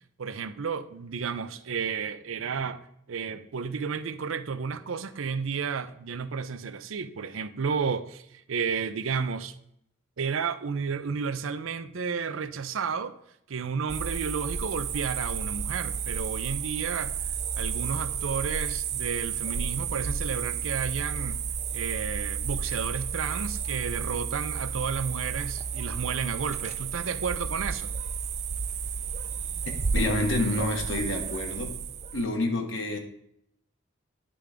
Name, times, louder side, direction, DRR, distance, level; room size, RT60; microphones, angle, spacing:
voice 1, 0.2-2.8 3.1-9.5 10.2-13.1 13.5-17.2 17.6-21.4 21.7-27.9, right 6 dB, 85° right, 0.5 m, -32 dB
sound 1, 13.9-32.3, right 6 dB, 35° right, 0.5 m, -32 dB
voice 2, 29.9-31.8 32.1-33.0, left 2 dB, 70° left, 1.3 m, -28 dB
10.0 x 3.4 x 5.0 m
head